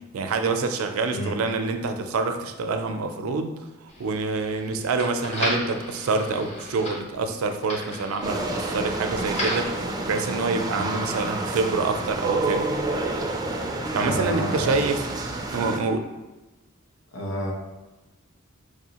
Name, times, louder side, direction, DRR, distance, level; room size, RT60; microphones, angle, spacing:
voice 1, 0.1-3.6 4.0-12.7 13.6-15.1 15.5-16.0, right 3 dB, 80° right, 6 dB, 0.4 m, -26 dB
sound 1, 3.9-9.8, left 1 dB, 30° left, 0.8 m, -34 dB
sound 2, 8.2-15.8, right 2 dB, 20° right, 0.3 m, -29 dB
voice 2, 14.0-14.9 17.1-17.5, equal, 85° left, -2 dB, 1.0 m, -30 dB
4.6 x 2.7 x 2.8 m, 1.1 s
head